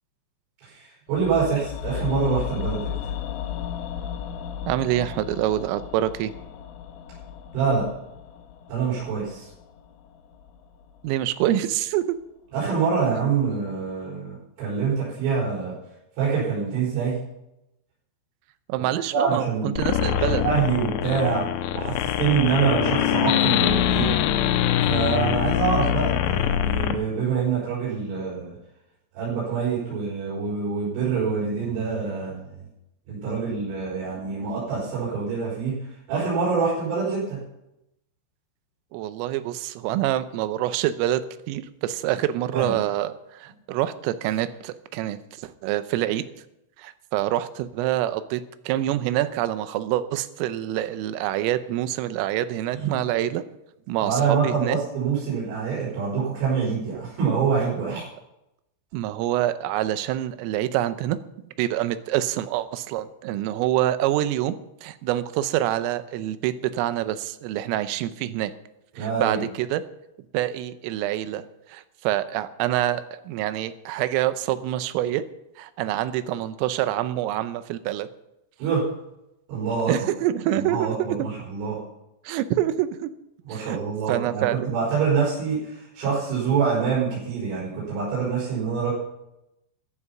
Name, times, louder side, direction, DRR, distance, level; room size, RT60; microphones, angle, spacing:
voice 1, 0.6-3.0 7.5-7.8 8.7-9.5 12.5-15.8 16.2-17.1 19.1-19.7 20.1-21.4 21.7-24.2 24.8-28.6 29.1-32.4 33.1-35.8 36.1-37.4 42.5-42.7 52.8-52.9 54.0-58.0 68.9-69.4 78.6-78.8 79.5-79.9 80.5-81.8 83.4-88.9, right 5 dB, 75° right, -8 dB, 7.5 m, -25 dB
sound 1, 1.1-11.3 11.5-11.6, left 9 dB, 70° left, 3.0 m, -35 dB
voice 2, 4.7-6.3 11.0-12.2 18.7-20.4 38.9-46.2 46.8-53.4 53.9-54.8 58.9-61.2 61.6-64.6 64.8-68.5 69.0-69.8 70.3-75.3 75.6-78.1 79.9-81.2 82.3-83.1 83.5-83.8 84.1-84.7, right 13 dB, 90° right, 12 dB, 3.4 m, -26 dB
sound 2, 19.8-27.0, left 12 dB, 90° left, 3.3 m, -23 dB
14.5 x 10.0 x 5.7 m, 0.87 s
omnidirectional pair, 5.8 m